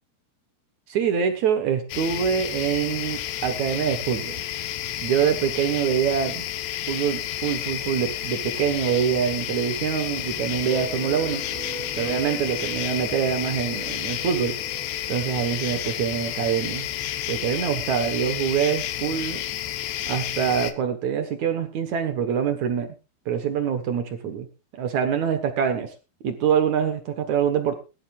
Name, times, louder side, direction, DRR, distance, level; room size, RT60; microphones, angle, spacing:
voice 1, 0.9-4.4 5.0-6.5 6.9-11.5 12.0-14.6 15.1-16.9 17.3-19.4 20.1-22.9 23.3-24.5 24.8-25.9 26.2-27.7, right 8 dB, 60° right, 7 dB, 2.1 m, -25 dB
sound 1, 1.9-20.7, left 12 dB, 85° left, 3.3 m, -31 dB
sound 2, 10.7-17.3, right 2 dB, 30° right, 1.7 m, -41 dB
20.5 x 12.0 x 2.5 m, 0.30 s
omnidirectional pair, 4.9 m